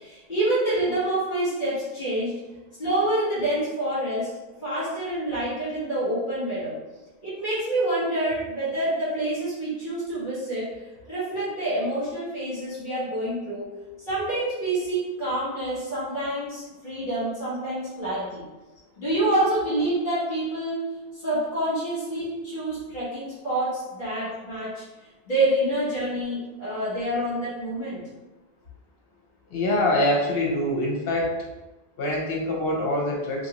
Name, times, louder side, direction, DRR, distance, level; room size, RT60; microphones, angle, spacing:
voice 1, 0.0-2.4 2.8-4.3 4.6-6.8 7.2-10.7 11.1-13.7 14.0-18.4 19.0-24.8 25.3-28.0, right 1 dB, 50° left, -9 dB, 1.4 m, -27 dB
voice 2, 29.5-31.4 32.0-33.5, left 1 dB, 65° left, -1 dB, 0.9 m, -24 dB
2.8 x 2.7 x 2.9 m, 1.1 s
omnidirectional pair, 1.1 m